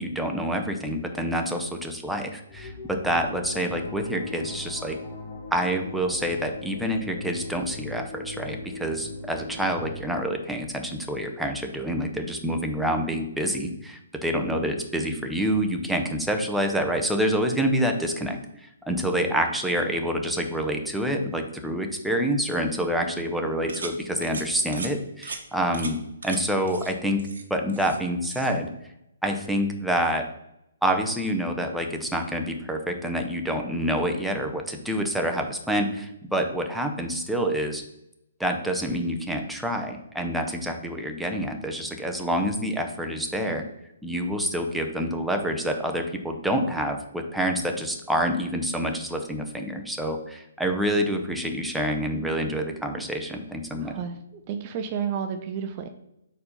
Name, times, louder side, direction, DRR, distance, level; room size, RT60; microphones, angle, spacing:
voice 1, 0.0-5.0 5.5-26.0 26.2-27.2 27.5-28.7 29.2-30.3 30.8-37.8 38.4-43.6 44.0-53.9, equal, ahead, 3 dB, 0.7 m, -27 dB
sound 1, 2.5-10.0, left 3 dB, 40° left, 1.4 m, -39 dB
sound 2, 23.7-23.9 24.2-24.4 24.7-24.9 25.2-25.4 25.7-25.9 26.2-26.4 26.7-26.9 27.2-28.0 28.2-28.5, right 4 dB, 70° right, 1.0 m, -37 dB
voice 2, 53.8-55.9, right 7 dB, 35° right, 7 dB, 0.5 m, -31 dB
4.3 x 4.1 x 5.2 m, 0.82 s
figure-of-eight pair, 135°, 0 cm